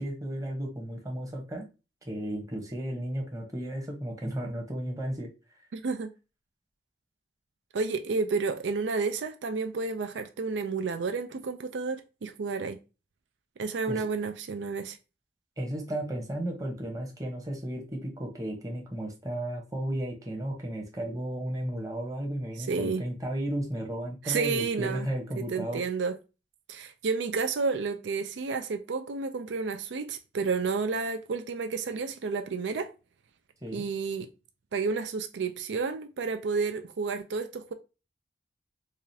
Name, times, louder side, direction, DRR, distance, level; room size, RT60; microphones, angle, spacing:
voice 1, 0.0-1.6 2.1-5.3 13.9-14.1 15.6-25.8 33.6-33.9, right 1 dB, 20° right, 1.0 m, -34 dB
voice 2, 5.7-6.1 7.7-12.8 13.6-15.0 22.7-23.0 24.2-25.1 25.4-26.2 26.7-32.9 33.7-34.3 34.7-37.7, right 4 dB, 90° right, 0.4 m, -31 dB
4.8 x 2.5 x 2.7 m
head